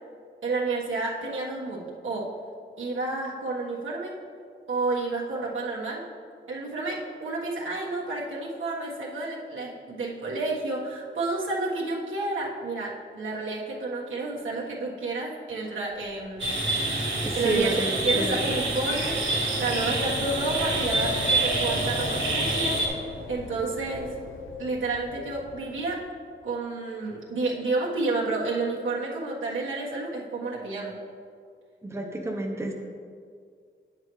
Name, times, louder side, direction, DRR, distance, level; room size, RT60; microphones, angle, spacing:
voice 1, 0.4-2.3 2.8-4.2 4.7-6.0 6.5-16.5 17.3-19.2 19.6-24.1 24.6-26.0 26.4-30.9, right 3 dB, 90° right, -5 dB, 1.4 m, -30 dB
Wind, 16.0-26.1, left 2 dB, 90° left, 0.7 m, -37 dB
sound 1, 16.4-22.9, right 2 dB, 70° right, 1.9 m, -27 dB
voice 2, 17.2-18.4 31.8-32.7, right 1 dB, 15° right, 1 dB, 0.7 m, -30 dB
9.1 x 7.5 x 3.1 m, 2.1 s
wide cardioid pair, 125°, 20 cm